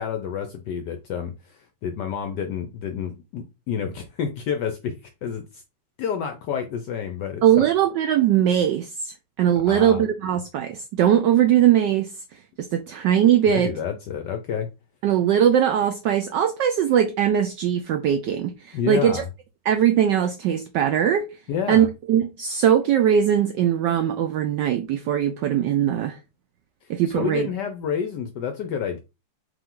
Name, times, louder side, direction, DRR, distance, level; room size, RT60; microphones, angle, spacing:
voice 1, 0.0-4.9 5.2-5.6 6.0-7.6 9.7-10.0 13.5-14.7 18.7-19.2 21.5-21.9 27.1-29.0, left 7 dB, 75° left, 1.0 m, -29 dB
voice 2, 7.4-12.1 12.6-13.7 15.0-19.2 19.7-21.3 21.7-26.2 26.9-27.5, right 9 dB, 80° right, 0.9 m, -20 dB
5.1 x 2.6 x 3.7 m
omnidirectional pair, 2.4 m